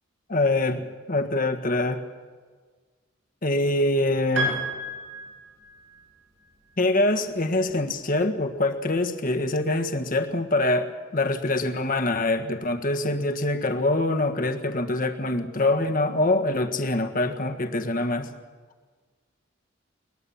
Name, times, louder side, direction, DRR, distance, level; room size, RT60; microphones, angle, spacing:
voice 1, 0.3-0.8 1.1-2.0 3.4-4.6 6.8-18.3, left 2 dB, 45° left, 6 dB, 1.6 m, -24 dB
Piano, 4.4-6.0, right 1 dB, 80° right, 7.3 m, -31 dB
21.5 x 20.5 x 7.2 m, 1.5 s
head